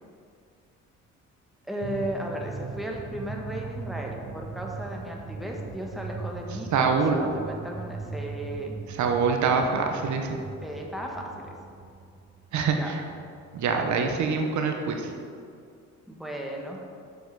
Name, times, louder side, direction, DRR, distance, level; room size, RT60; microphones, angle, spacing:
voice 1, 1.7-8.8 10.6-11.5 12.8-13.0 16.1-16.8, equal, ahead, 0 dB, 1.3 m, -35 dB
sound 1, 1.8-13.8, right 4 dB, 25° right, 0.7 m, -40 dB
voice 2, 6.7-7.2 8.9-10.4 12.5-13.0 13.5-15.1, right 5 dB, 70° right, 3 dB, 0.9 m, -25 dB
7.2 x 6.5 x 4.7 m, 2.3 s
cardioid pair, 90°, 30 cm